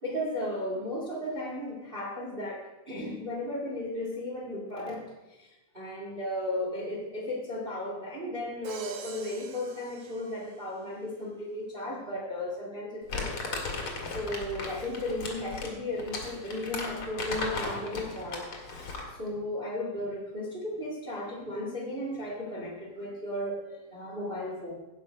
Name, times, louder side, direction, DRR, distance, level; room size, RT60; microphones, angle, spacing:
voice 1, 0.0-5.1 5.7-13.4 14.1-18.5 19.2-24.7, left 1 dB, 25° right, -4 dB, 1.4 m, -35 dB
Crash cymbal, 8.6-10.9, right 6 dB, 75° right, 1.5 m, -46 dB
Crumpling crinkling, 13.1-19.2, left 3 dB, 45° left, 2.2 m, -36 dB
16.5 x 5.9 x 5.1 m, 1.1 s
omnidirectional pair, 4.0 m